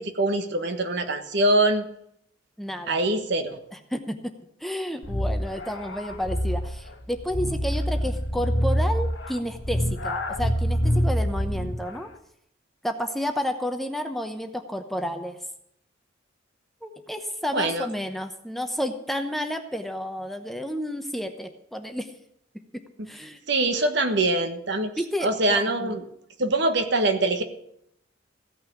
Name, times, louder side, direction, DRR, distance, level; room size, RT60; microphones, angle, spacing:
voice 1, 0.0-1.8 2.9-3.6 17.5-17.9 23.5-24.9 25.2-26.0 26.4-27.4, right 2 dB, 60° right, 7 dB, 1.4 m, -23 dB
voice 2, 2.6-3.0 3.7-4.2 4.6-12.1 12.8-15.4 16.8-22.1 23.1-23.4 25.0-26.0, equal, ahead, 6 dB, 0.8 m, -31 dB
sound 1, 5.0-11.9, equal, 75° left, 1.4 m, -26 dB
16.0 x 6.2 x 8.5 m, 0.74 s
head